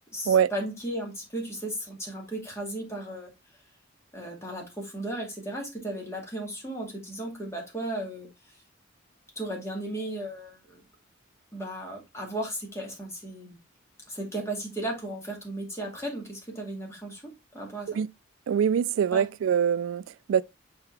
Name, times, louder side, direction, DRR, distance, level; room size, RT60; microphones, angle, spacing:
voice 1, 0.1-3.3 4.1-8.3 9.4-10.8 11.5-13.6 14.1-18.0 19.1-19.3, right 1 dB, 15° left, 2.3 m, -35 dB
voice 2, 18.5-20.4, right 8 dB, 85° right, 0.3 m, -24 dB
6.8 x 4.4 x 3.3 m
head